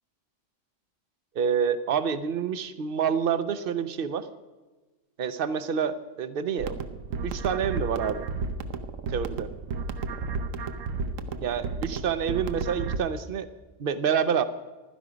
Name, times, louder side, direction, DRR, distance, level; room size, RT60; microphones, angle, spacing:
voice 1, 1.3-4.3 5.2-6.8 7.2-8.3 9.1-9.5 11.4-13.5 13.8-14.4, right 7 dB, 50° right, 12 dB, 0.9 m, -27 dB
sound 1, 6.6-13.0, right 4 dB, 85° right, 1.2 m, -33 dB
15.5 x 12.0 x 5.1 m, 1.2 s
omnidirectional pair, 1.3 m